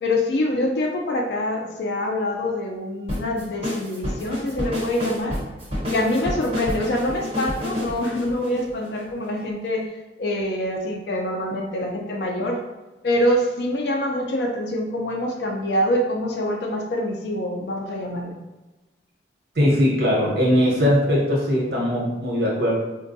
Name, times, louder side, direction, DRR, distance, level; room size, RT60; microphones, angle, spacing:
voice 1, 0.0-5.4 5.9-9.8 10.2-12.6 13.0-18.4, left 1 dB, 70° left, 1 dB, 0.4 m, -25 dB
sound 1, 3.1-9.4, left 1 dB, 35° right, 1.0 m, -29 dB
voice 2, 19.5-22.7, equal, 60° right, -3 dB, 0.9 m, -20 dB
3.6 x 2.2 x 2.6 m, 1.1 s
head